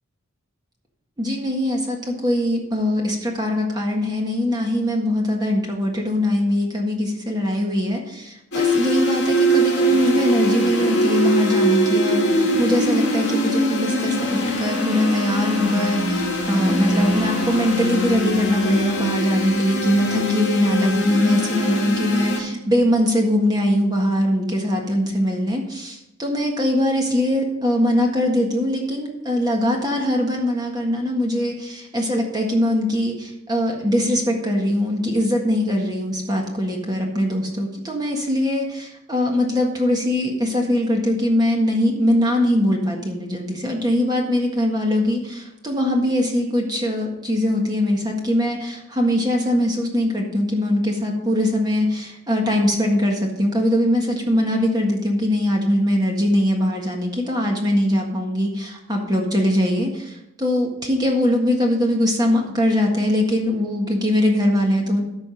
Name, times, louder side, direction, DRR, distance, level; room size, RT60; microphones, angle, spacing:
voice 1, 1.2-65.0, left 1 dB, 20° right, 0 dB, 1.6 m, -21 dB
sound 1, 8.5-22.4, equal, 50° left, 3.4 m, -21 dB
13.5 x 5.1 x 5.2 m, 0.88 s
head